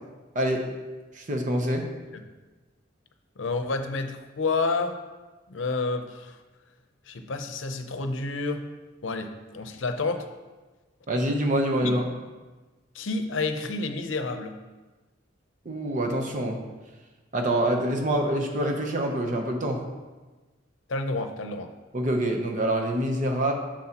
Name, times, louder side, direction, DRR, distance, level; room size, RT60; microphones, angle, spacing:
voice 1, 0.3-0.7 1.1-1.9 11.1-12.1 15.6-16.6 17.3-19.8 21.9-23.5, right 1 dB, 40° right, 2 dB, 0.8 m, -26 dB
voice 2, 3.4-4.9 5.5-6.4 7.1-8.6 9.0-10.3 11.8-11.9 12.9-14.5 20.9-21.7, left 3 dB, 85° left, 7 dB, 0.6 m, -29 dB
7.8 x 6.3 x 2.9 m, 1.2 s
head